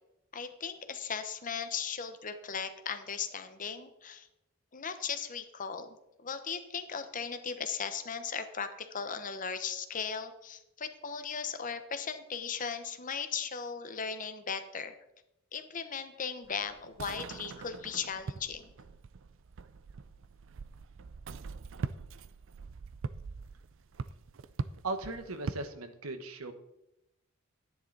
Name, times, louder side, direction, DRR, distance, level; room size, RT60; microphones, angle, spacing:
voice 1, 0.3-4.3 4.7-14.9 15.5-18.7, left 6 dB, 40° left, 9 dB, 0.9 m, -37 dB
sound 1, 16.4-25.7, right 4 dB, 60° right, 0.5 m, -42 dB
voice 2, 24.8-26.5, right 3 dB, 85° right, 7 dB, 1.2 m, -37 dB
11.5 x 10.0 x 4.0 m, 0.87 s
head